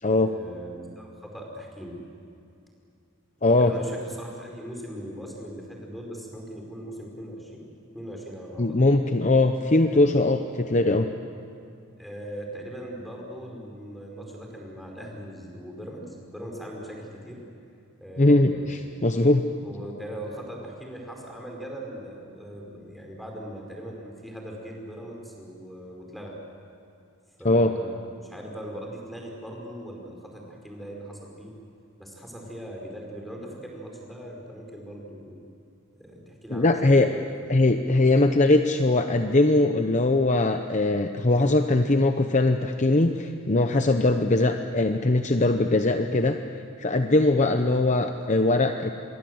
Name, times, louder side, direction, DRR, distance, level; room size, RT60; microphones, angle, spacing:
voice 1, 0.0-2.0 3.4-7.6 7.9-8.6 9.9-10.1 12.0-17.4 18.0-19.0 19.6-26.4 27.4-31.5 32.0-35.4 36.0-37.4 38.1-38.2 44.3-44.4 47.6-47.7, equal, ahead, 0 dB, 4.7 m, -40 dB
voice 2, 8.6-11.1 18.2-19.4 27.4-27.7 36.5-37.1 37.5-46.4 46.8-48.9, left 2 dB, 35° left, 7 dB, 0.8 m, -21 dB
27.0 x 22.5 x 7.9 m, 2.5 s
head